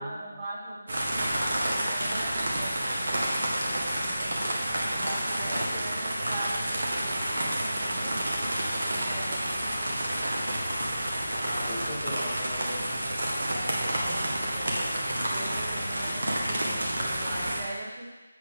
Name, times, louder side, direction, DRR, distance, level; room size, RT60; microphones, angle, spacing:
voice 1, 0.0-4.4 4.9-8.2 8.9-9.6 11.6-12.0 13.8-18.1, right 1 dB, 20° right, -7 dB, 2.1 m, -41 dB
sound 1, 0.9-17.6, right 1 dB, 55° right, 1.6 m, -29 dB
voice 2, 5.4-5.8 9.7-10.2 11.4-13.0, left 1 dB, 30° left, -6 dB, 1.3 m, -40 dB
sound 2, 6.8-17.5, left 1 dB, 65° left, 1.8 m, -43 dB
8.5 x 6.0 x 3.6 m, 1.2 s
figure-of-eight pair, 155°, 0 cm